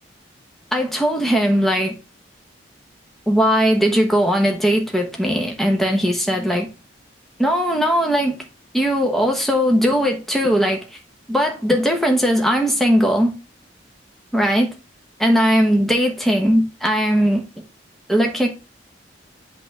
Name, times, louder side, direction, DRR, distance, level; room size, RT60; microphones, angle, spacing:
voice 1, 0.7-1.9 3.3-6.7 7.4-8.4 8.7-11.0 11.3-13.3 14.3-14.7 15.2-17.4 18.1-18.5, equal, ahead, 1.0 m, -19 dB
8.0 x 3.5 x 5.8 m
head